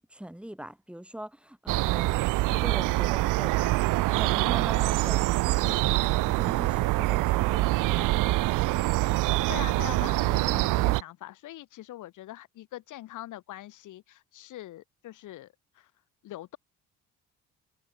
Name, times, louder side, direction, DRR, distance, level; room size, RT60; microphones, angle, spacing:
voice 1, 0.1-2.1 2.5-3.8 4.1-8.3, right 1 dB, 5° right, 3.4 m, -42 dB
sound 1, 1.7-11.0, right 20 dB, 85° right, 0.7 m, -25 dB
voice 2, 9.5-15.9 16.2-16.6, left 14 dB, 75° left, 4.0 m, -42 dB
cardioid pair, 120°, 31 cm